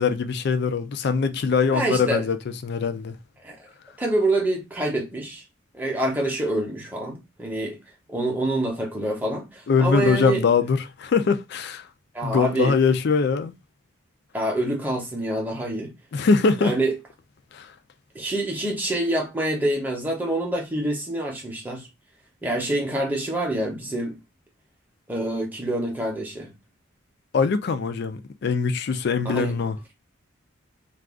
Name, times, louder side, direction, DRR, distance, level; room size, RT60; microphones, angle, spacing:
voice 1, 0.0-3.2 9.7-11.9 12.2-13.5 16.1-16.7 17.5-17.7 27.3-29.8, left 5 dB, 50° left, 0.3 m, -22 dB
voice 2, 1.7-2.3 3.4-3.6 4.0-5.4 5.7-7.8 8.1-10.4 12.1-12.8 14.3-15.9 16.6-17.0 18.1-21.9 22.4-24.2 25.1-26.5 29.3-29.5, right 1 dB, 10° right, 0.7 m, -26 dB
2.4 x 2.3 x 3.4 m
head